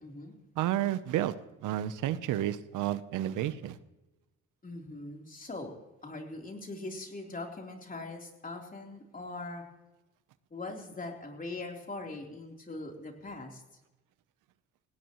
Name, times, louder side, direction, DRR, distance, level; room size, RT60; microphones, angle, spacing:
voice 1, 0.0-0.3 4.6-9.6 10.5-13.6, left 2 dB, 30° left, 1 dB, 3.6 m, -41 dB
voice 2, 0.6-1.3 1.6-3.8, right 12 dB, 90° right, 14 dB, 0.8 m, -31 dB
18.5 x 17.5 x 3.1 m, 1.0 s
cardioid pair, 90°, 30 cm